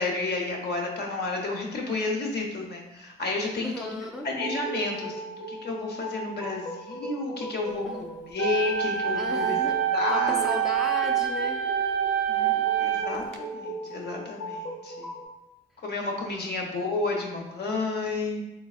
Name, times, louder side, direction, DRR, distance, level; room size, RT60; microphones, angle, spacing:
voice 1, 0.0-9.6 9.9-10.4 12.3-15.1 15.8-18.4, left 3 dB, 55° left, 0 dB, 0.8 m, -31 dB
voice 2, 3.6-4.3 7.8-8.0 9.1-9.8 10.1-11.6 16.3-16.6, left 1 dB, ahead, 1 dB, 0.3 m, -35 dB
sound 1, 4.2-15.2, right 2 dB, 90° left, 1.2 m, -37 dB
sound 2, 8.4-13.4, right 10 dB, 70° right, 0.4 m, -26 dB
3.9 x 3.2 x 2.4 m, 0.93 s
cardioid pair, 90°, 20 cm